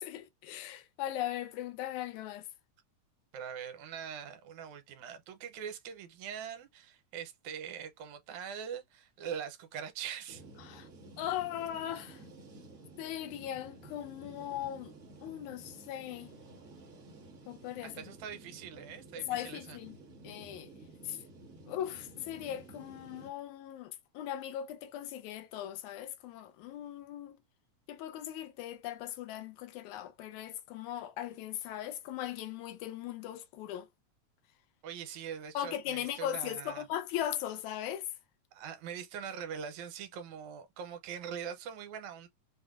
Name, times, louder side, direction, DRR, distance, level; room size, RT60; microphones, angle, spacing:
voice 1, 0.0-2.5 10.6-10.9 11.2-12.2 13.0-14.9 15.2-16.3 17.5-17.9 19.2-20.0 20.2-20.7 21.0-21.2 21.7-27.4 27.9-33.9 35.5-38.1, left 11 dB, 85° left, 2.0 m, -39 dB
voice 2, 3.3-10.4 17.8-19.8 34.8-36.9 38.5-42.3, right 8 dB, 80° right, 2.1 m, -42 dB
sound 1, 10.3-23.3, right 2 dB, 50° right, 0.9 m, -53 dB
5.6 x 2.2 x 2.4 m
omnidirectional pair, 3.4 m